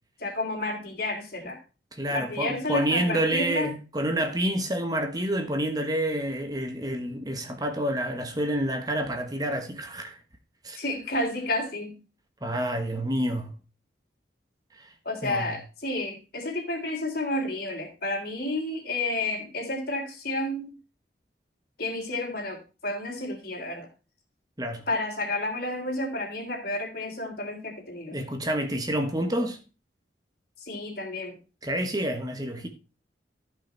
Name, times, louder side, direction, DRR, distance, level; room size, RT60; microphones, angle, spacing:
voice 1, 0.2-1.6 2.1-3.7 10.8-12.0 15.1-20.7 21.8-23.9 24.9-28.2 30.6-31.4, left 2 dB, 55° left, 3.5 m, -31 dB
voice 2, 1.9-10.2 10.6-10.8 12.4-13.6 14.7-14.9 15.2-15.5 24.6-24.9 28.1-29.6 31.6-32.7, right 1 dB, 20° right, 1.3 m, -28 dB
13.5 x 5.8 x 4.5 m
head